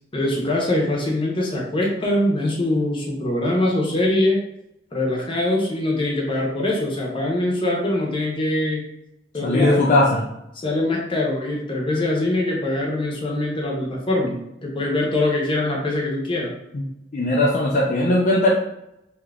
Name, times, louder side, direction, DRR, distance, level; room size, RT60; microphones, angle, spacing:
voice 1, 0.1-4.4 4.9-8.8 9.3-9.8 10.5-16.5, left 1 dB, 30° left, -2 dB, 0.8 m, -23 dB
voice 2, 9.4-10.2 16.7-16.8 17.1-18.5, left 1 dB, 45° left, -3 dB, 0.4 m, -19 dB
2.8 x 2.4 x 3.3 m, 0.82 s
head